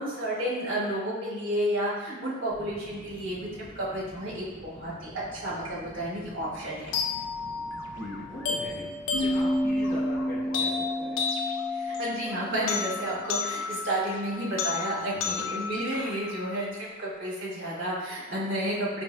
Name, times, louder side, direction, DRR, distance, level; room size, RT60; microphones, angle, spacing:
voice 1, 0.0-6.9 11.7-19.0, right 1 dB, 60° right, -7 dB, 1.3 m, -31 dB
sound 1, 2.5-10.6, equal, 5° right, 0.7 m, -48 dB
sound 2, 6.9-17.0, left 5 dB, 65° left, 0.4 m, -33 dB
voice 2, 7.9-8.9 9.2-11.2 15.2-15.5, left 1 dB, 40° left, -13 dB, 1.0 m, -40 dB
sound 3, 9.1-12.7, equal, 90° left, 0.8 m, -30 dB
4.4 x 3.2 x 2.2 m, 1.3 s
head